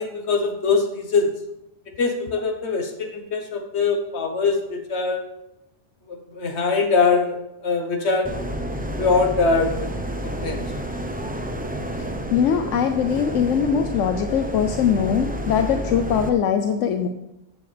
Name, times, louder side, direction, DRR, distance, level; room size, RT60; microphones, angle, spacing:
voice 1, 0.0-1.3 2.0-5.2 6.1-7.4 7.6-8.4 9.0-9.9 10.2-10.6, left 4 dB, 60° left, 4 dB, 1.5 m, -22 dB
sound 1, 8.2-16.3, right 1 dB, 10° right, 0.5 m, -30 dB
voice 2, 12.3-17.1, left 8 dB, 80° left, 6 dB, 1.0 m, -21 dB
13.5 x 7.1 x 3.4 m, 0.88 s
omnidirectional pair, 1.3 m